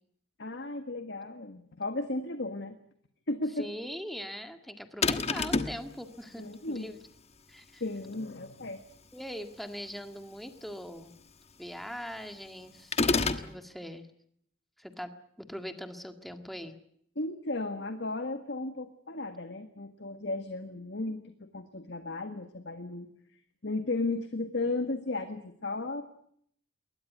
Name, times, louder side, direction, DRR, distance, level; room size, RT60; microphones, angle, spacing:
voice 1, 0.4-2.8 3.3-3.7 6.4-6.9 7.8-8.8 17.1-23.1 23.6-26.0, left 2 dB, 60° left, 8 dB, 1.7 m, -35 dB
voice 2, 3.6-7.0 7.5-7.8 9.1-11.1 11.6-14.1 14.8-15.1 15.4-16.8, equal, ahead, 7 dB, 1.9 m, -41 dB
sound 1, 5.0-5.8 12.9-13.5, left 3 dB, 35° left, 1.3 m, -27 dB
22.0 x 19.0 x 9.3 m, 0.68 s
head